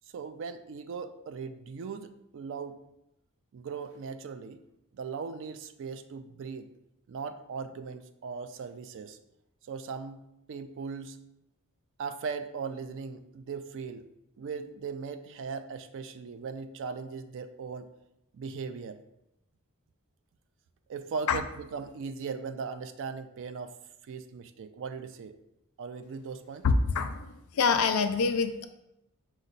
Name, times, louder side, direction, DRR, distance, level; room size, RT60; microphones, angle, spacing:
voice 1, 0.1-2.8 3.5-4.6 4.9-6.7 7.1-9.2 9.7-10.2 10.5-11.2 12.0-14.1 14.4-17.9 18.3-19.0 20.9-23.7 24.0-25.3 25.8-26.7, right 5 dB, 55° right, 10 dB, 0.3 m, -38 dB
voice 2, 26.6-27.3 27.5-28.7, left 5 dB, 65° left, 8 dB, 0.4 m, -25 dB
5.2 x 2.0 x 3.9 m, 0.85 s
head